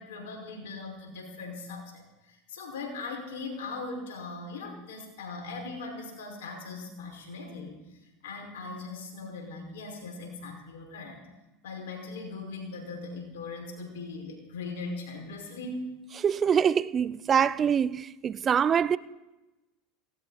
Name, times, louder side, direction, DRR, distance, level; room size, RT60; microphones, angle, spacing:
voice 1, 0.0-7.8 8.2-11.2 11.6-16.0, left 3 dB, 80° left, 5.3 m, -39 dB
voice 2, 16.2-19.0, right 7 dB, 30° right, 0.5 m, -24 dB
18.0 x 17.5 x 4.2 m
hypercardioid pair, 100°, 0 cm